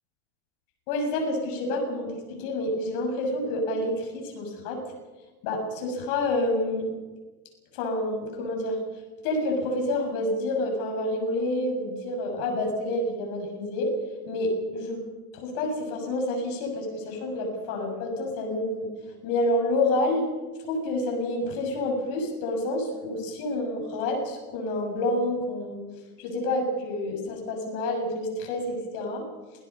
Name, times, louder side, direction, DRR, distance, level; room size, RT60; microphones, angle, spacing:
voice 1, 0.9-4.8 5.4-7.0 7.7-8.8 9.2-13.9 14.3-15.0 15.3-18.9 19.2-20.3 20.7-25.8 26.2-29.3, left 1 dB, 60° left, 2 dB, 7.0 m, -28 dB
27.5 x 17.5 x 5.6 m, 1.2 s
supercardioid pair, 135°, 43 cm